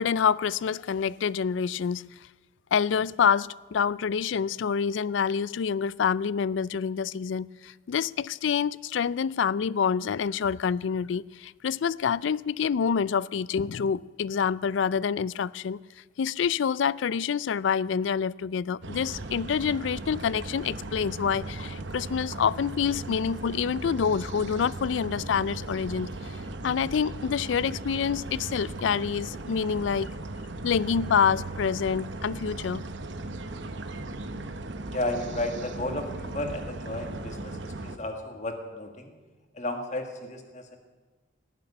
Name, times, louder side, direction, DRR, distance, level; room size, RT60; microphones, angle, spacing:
voice 1, 0.0-2.3 2.7-15.8 16.2-30.1 30.6-32.9, left 6 dB, 80° left, 0.4 m, -27 dB
sound 1, 18.8-38.0, right 2 dB, 75° right, 1.0 m, -37 dB
voice 2, 34.8-39.1 39.5-40.8, left 1 dB, 40° left, 1.8 m, -33 dB
18.5 x 7.5 x 10.0 m
head